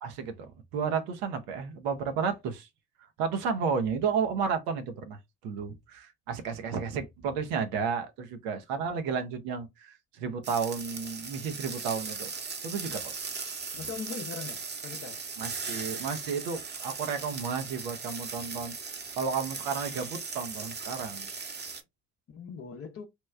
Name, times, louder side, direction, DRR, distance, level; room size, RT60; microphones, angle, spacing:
voice 1, 0.0-2.7 3.2-12.3 12.6-13.2 15.4-18.7 19.2-21.3, right 6 dB, 80° right, 0.8 m, -32 dB
sound 1, 10.4-21.8, right 5 dB, 30° right, 0.8 m, -38 dB
voice 2, 13.7-15.2 22.3-23.1, left 5 dB, 40° left, 0.6 m, -40 dB
2.9 x 2.3 x 3.2 m
supercardioid pair, 65°, 36 cm